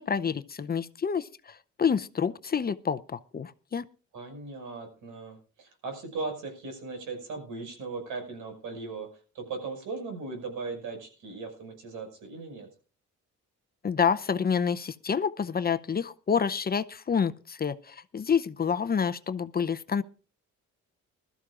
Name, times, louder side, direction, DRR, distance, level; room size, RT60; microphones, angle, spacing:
voice 1, 0.0-3.8 13.8-20.0, left 6 dB, 30° left, 0.7 m, -28 dB
voice 2, 4.1-9.1 9.3-12.7, right 4 dB, 85° right, 5.7 m, -38 dB
20.5 x 13.5 x 2.5 m
cardioid pair, 90°, 30 cm